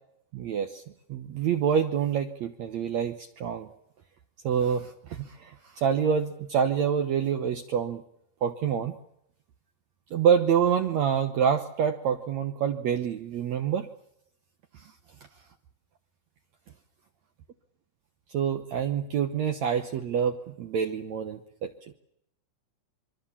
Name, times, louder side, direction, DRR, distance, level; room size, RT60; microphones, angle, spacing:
voice 1, 0.3-0.8 1.1-3.7 4.4-8.0 8.4-9.0 10.1-13.9 14.7-14.9 18.3-21.7, right 7 dB, 80° right, 6 dB, 1.5 m, -27 dB
26.5 x 23.0 x 7.2 m, 0.76 s
omnidirectional pair, 4.7 m